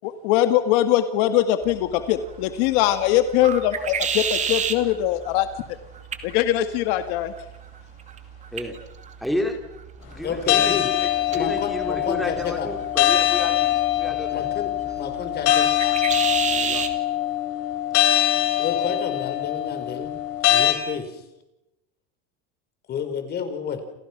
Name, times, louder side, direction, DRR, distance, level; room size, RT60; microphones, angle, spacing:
voice 1, 0.2-5.5 6.2-7.3, left 12 dB, 70° left, 9 dB, 2.0 m, -21 dB
sound 1, 1.6-17.0, right 7 dB, 25° right, 2.5 m, -33 dB
voice 2, 9.2-9.6 10.1-14.4 16.4-16.9, left 1 dB, ahead, 3 dB, 3.4 m, -32 dB
voice 3, 10.2-10.9 11.3-12.7 13.5-13.6 14.3-14.7 15.0-15.9 18.6-20.1 20.5-21.2 22.9-23.8, left 6 dB, 35° left, 7 dB, 4.8 m, -30 dB
sound 2, 10.5-20.7, left 13 dB, 55° left, 5.4 m, -23 dB
29.5 x 29.0 x 6.1 m, 0.91 s
cardioid pair, 155°, 29 cm